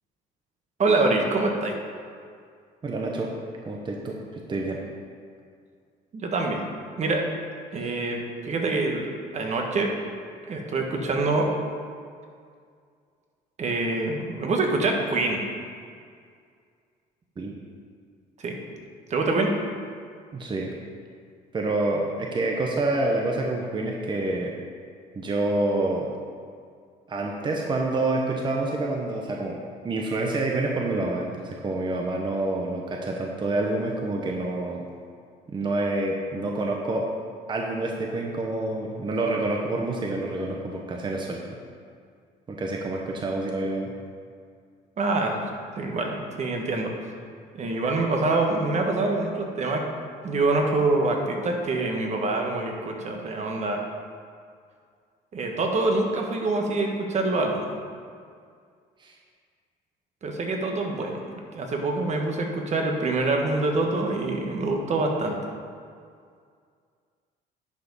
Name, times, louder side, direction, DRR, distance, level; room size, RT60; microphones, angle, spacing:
voice 1, 0.8-1.7 6.1-6.6 7.0-7.2 7.7-9.1 9.3-9.9 10.5-11.5 13.6-15.4 18.4-18.6 19.1-19.5 45.0-45.4 45.7-46.9 47.5-49.8 50.2-53.8 55.3-57.7 60.2-65.4, right 2 dB, 45° right, 2 dB, 1.5 m, -25 dB
voice 2, 2.8-3.3 3.7-4.8 7.8-7.9 17.4-17.6 20.3-20.7 21.5-24.5 25.2-26.1 27.1-29.6 29.8-34.8 35.5-37.0 37.5-41.4 42.5-43.9 59.0-59.2, right 2 dB, 25° right, 0 dB, 0.9 m, -27 dB
10.5 x 5.0 x 5.6 m, 2.2 s
cardioid pair, 110°, 17 cm